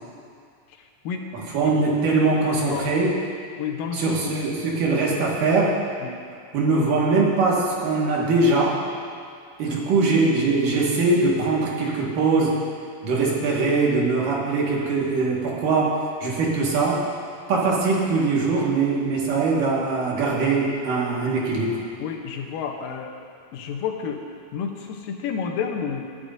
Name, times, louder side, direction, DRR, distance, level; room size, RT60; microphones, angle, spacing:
voice 1, 1.3-3.2 3.9-5.8 6.5-8.8 9.6-12.6 13.0-17.0 17.5-21.8, right 3 dB, 75° right, -4 dB, 3.4 m, -22 dB
voice 2, 2.4-2.9 3.6-4.4 6.0-6.2 9.6-9.8 22.0-24.2 24.5-26.0, left 6 dB, 85° left, 2 dB, 2.7 m, -30 dB
20.5 x 11.0 x 2.7 m, 2.2 s
omnidirectional pair, 3.8 m